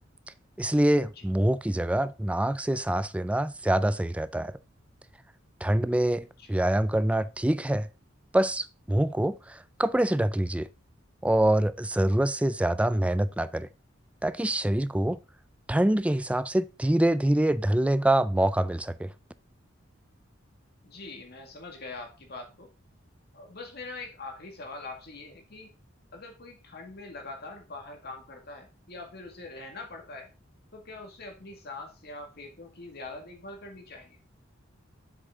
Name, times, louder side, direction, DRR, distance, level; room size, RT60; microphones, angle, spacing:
voice 1, 0.6-4.5 5.6-7.9 8.3-10.7 11.2-13.7 14.2-15.2 15.7-19.1, right 1 dB, 5° right, 0.3 m, -25 dB
voice 2, 20.8-22.7 23.3-25.7 26.1-30.3 30.7-34.2, left 3 dB, 55° left, 2.0 m, -43 dB
7.7 x 6.5 x 3.7 m
head